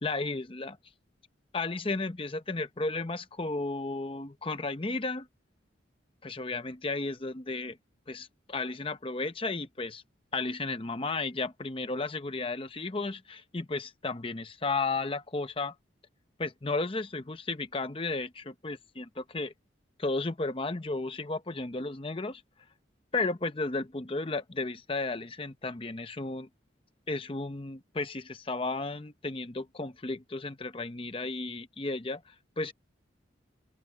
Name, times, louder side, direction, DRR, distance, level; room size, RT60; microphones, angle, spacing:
voice 1, 0.0-0.8 1.5-5.3 6.2-7.8 8.1-10.0 10.3-15.7 16.4-19.5 20.0-22.4 23.1-26.5 27.1-32.7, left 3 dB, 30° left, 0.8 m, -33 dB
open air
head